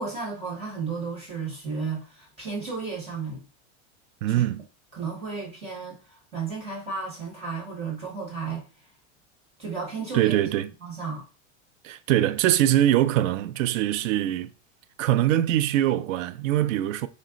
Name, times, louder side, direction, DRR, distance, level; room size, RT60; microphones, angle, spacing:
voice 1, 0.0-3.4 4.3-4.4 4.9-8.6 9.6-10.4 10.8-11.2, right 4 dB, 15° right, 1.3 m, -33 dB
voice 2, 4.2-4.7 10.1-10.7 11.8-14.5 15.0-17.1, right 13 dB, 90° right, 0.5 m, -23 dB
5.1 x 2.1 x 3.6 m
supercardioid pair, 175°, 38 cm